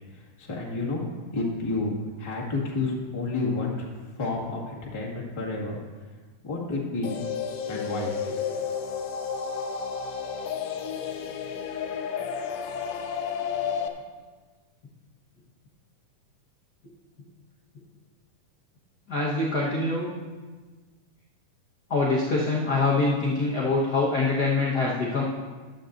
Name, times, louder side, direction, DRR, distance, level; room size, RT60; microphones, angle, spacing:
voice 1, 0.1-1.0 1.3-3.9 4.1-5.8 6.4-7.1 7.7-8.7, left 3 dB, 15° left, -4 dB, 0.9 m, -30 dB
sound 1, 7.0-13.9, left 7 dB, 90° left, 1.4 m, -31 dB
voice 2, 19.1-20.1 21.9-25.2, left 3 dB, 65° left, -5 dB, 0.9 m, -24 dB
14.5 x 10.5 x 2.6 m, 1.4 s
omnidirectional pair, 3.8 m